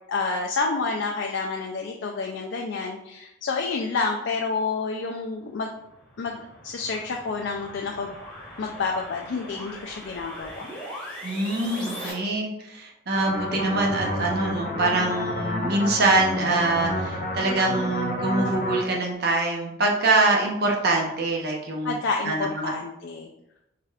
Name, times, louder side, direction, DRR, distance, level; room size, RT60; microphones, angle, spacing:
voice 1, 0.1-5.7 6.2-8.2 8.6-10.6 21.8-23.3, left 4 dB, 60° left, 1 dB, 0.4 m, -29 dB
sound 1, 5.7-12.1, equal, 5° left, 1.1 m, -40 dB
voice 2, 11.2-21.9 22.3-22.7, right 2 dB, 50° right, 0 dB, 0.7 m, -24 dB
sound 2, 13.1-18.8, left 1 dB, 45° left, 0.8 m, -29 dB
4.8 x 3.2 x 2.4 m, 0.87 s
head